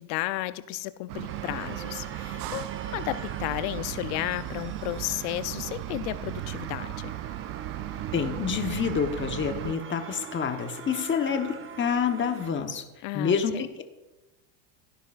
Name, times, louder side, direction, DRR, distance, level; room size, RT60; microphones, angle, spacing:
voice 1, 0.0-7.1 13.0-13.7, left 17 dB, 65° left, 14 dB, 0.8 m, -33 dB
sound 1, 1.1-9.7, right 15 dB, 45° right, 0.5 m, -36 dB
sound 2, 1.3-12.5, right 6 dB, 25° right, 1.0 m, -43 dB
voice 2, 8.1-12.8 13.1-13.8, left 6 dB, 25° left, 7 dB, 1.1 m, -28 dB
16.5 x 10.5 x 2.5 m, 1.0 s
supercardioid pair, 115°, 49 cm